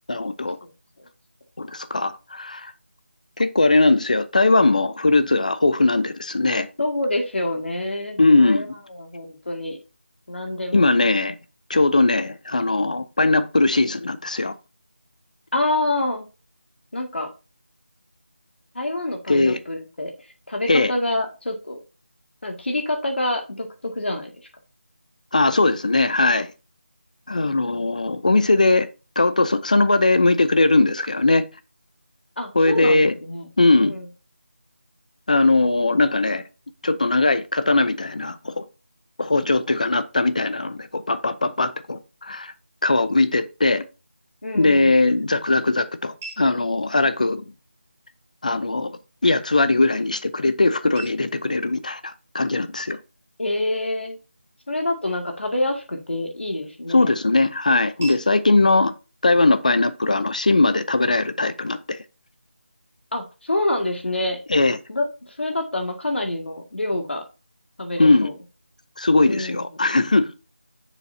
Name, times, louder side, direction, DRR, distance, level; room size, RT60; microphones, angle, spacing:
voice 1, 0.1-0.6 1.6-2.7 3.4-6.7 8.2-8.6 10.7-11.3 11.7-14.5 19.3-19.6 20.7-20.9 25.3-26.5 27.3-28.9 29.2-31.4 32.5-33.2 33.6-33.9 35.3-36.4 36.8-38.6 39.2-42.5 42.8-43.8 44.5-47.4 48.4-53.0 56.9-58.9 59.2-62.0 64.5-64.8 68.0-68.3 69.0-70.3, left 2 dB, 35° left, 0.6 m, -19 dB
voice 2, 6.8-9.8 10.3-10.9 15.5-16.3 16.9-17.3 18.7-20.1 20.5-21.8 22.4-24.3 32.4-33.5 33.8-34.1 44.4-45.0 53.4-54.2 54.7-57.1 63.1-64.4 64.9-67.2 67.8-68.3 69.3-69.8, left 1 dB, 60° left, 2.1 m, -27 dB
sound 1, 44.4-60.4, right 3 dB, 10° right, 1.2 m, -50 dB
9.1 x 7.0 x 2.7 m
figure-of-eight pair, 175°, 7 cm